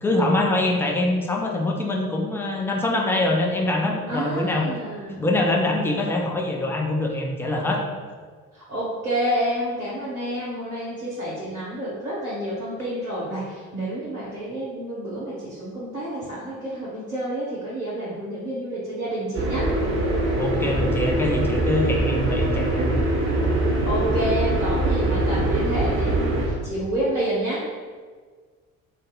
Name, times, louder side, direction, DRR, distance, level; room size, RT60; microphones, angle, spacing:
voice 1, 0.0-4.7 5.2-7.8 20.4-23.0, left 1 dB, 5° left, 0 dB, 0.3 m, -24 dB
voice 2, 4.1-5.2 8.5-19.7 23.8-27.8, right 1 dB, 85° right, -9 dB, 0.8 m, -29 dB
sound 1, 19.3-26.5, right 1 dB, 30° right, 1.1 m, -23 dB
2.6 x 2.3 x 3.8 m, 1.5 s
figure-of-eight pair, 50°, 42 cm